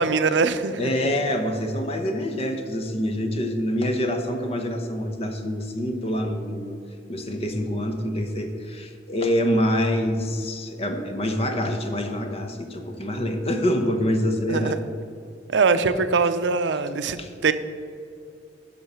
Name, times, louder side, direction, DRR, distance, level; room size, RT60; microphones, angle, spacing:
voice 1, 0.0-0.8 14.5-14.8 15.5-17.5, right 4 dB, 80° right, 11 dB, 0.6 m, -22 dB
voice 2, 0.8-6.8 7.1-14.7 17.2-17.3, equal, 35° left, 6 dB, 0.9 m, -26 dB
10.5 x 5.7 x 5.5 m, 2.4 s
head